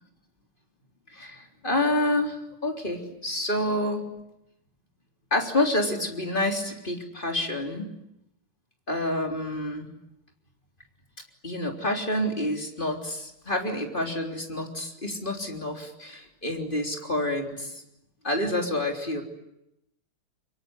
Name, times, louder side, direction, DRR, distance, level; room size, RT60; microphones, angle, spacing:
voice 1, 1.1-4.0 5.3-7.9 8.9-9.9 11.4-17.8 18.2-19.2, left 1 dB, 25° left, 2 dB, 3.7 m, -28 dB
24.5 x 24.0 x 9.8 m, 0.84 s
omnidirectional pair, 2.3 m